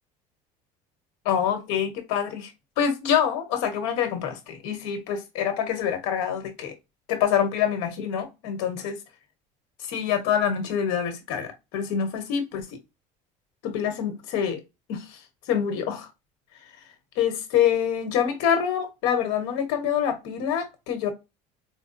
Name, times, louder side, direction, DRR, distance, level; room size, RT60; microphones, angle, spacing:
voice 1, 1.2-2.5 2.8-6.7 7.1-9.0 9.8-12.8 13.6-14.6 14.9-15.2 15.5-16.1 17.2-21.1, left 8 dB, 80° left, 1.1 m, -26 dB
4.5 x 2.2 x 2.6 m
supercardioid pair, 95°, 16 cm